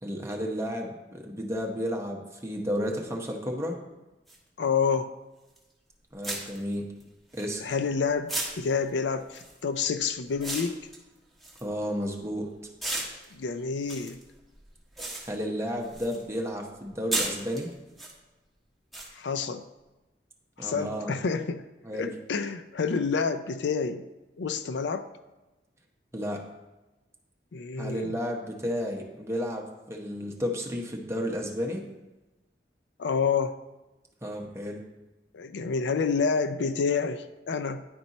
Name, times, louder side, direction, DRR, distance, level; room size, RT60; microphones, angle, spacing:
voice 1, 0.0-3.8 6.1-6.8 7.3-7.7 11.6-12.5 15.3-17.7 20.6-21.1 21.8-22.1 26.1-26.4 27.8-31.8 34.2-34.8, equal, 15° right, 0 dB, 0.9 m, -32 dB
sound 1, 4.3-4.4 5.6-5.7 6.2-7.9 8.3-12.3 12.8-16.3 16.5-18.1 18.9-19.1, right 1 dB, ahead, 1.3 m, -36 dB
voice 2, 4.6-5.1 7.6-10.8 13.3-14.2 19.2-19.6 20.6-21.6 21.9-24.0 24.4-25.1 27.5-28.1 33.0-33.6 35.3-37.8, left 5 dB, 80° left, 10 dB, 0.4 m, -28 dB
10.0 x 4.3 x 4.1 m, 1.1 s
head